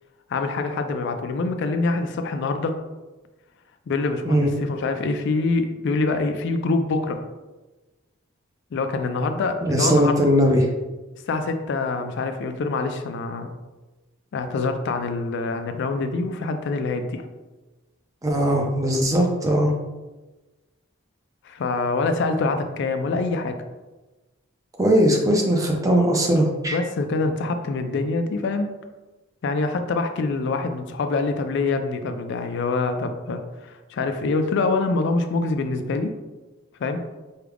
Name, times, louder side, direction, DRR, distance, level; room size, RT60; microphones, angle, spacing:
voice 1, 0.3-2.8 3.9-7.2 8.7-10.1 11.3-13.5 14.3-17.2 21.4-23.5 25.7-25.8 26.7-28.7 29.4-36.1 36.8-37.0, left 3 dB, 55° left, 7 dB, 0.3 m, -25 dB
voice 2, 9.6-10.7 18.2-19.7 24.8-26.8, equal, 15° right, 1 dB, 0.5 m, -19 dB
4.7 x 2.3 x 3.4 m, 1.2 s
head